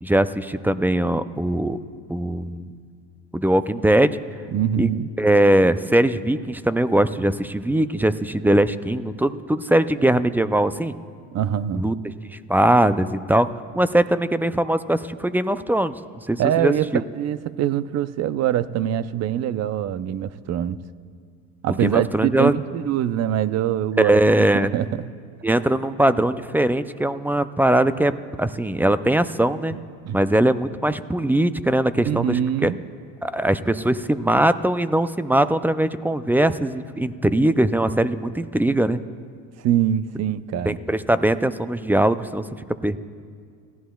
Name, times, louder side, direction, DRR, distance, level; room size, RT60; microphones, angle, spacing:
voice 1, 0.0-1.8 2.1-2.7 3.3-4.2 4.8-4.9 5.2-10.9 11.7-12.0 12.3-13.5 13.7-17.0 21.7-22.5 24.0-24.7 25.4-28.1 28.4-29.8 30.1-32.7 33.2-39.0 40.7-42.4 42.8-43.0, right 1 dB, 5° right, 13 dB, 0.4 m, -21 dB
voice 2, 4.5-5.1 11.3-11.8 16.4-16.9 17.1-20.8 21.6-24.2 24.5-25.1 29.7-29.8 30.1-30.2 32.1-32.8 39.6-40.8, right 10 dB, 45° right, 14 dB, 0.6 m, -23 dB
29.5 x 15.5 x 2.3 m, 2.2 s
hypercardioid pair, 85°, 38 cm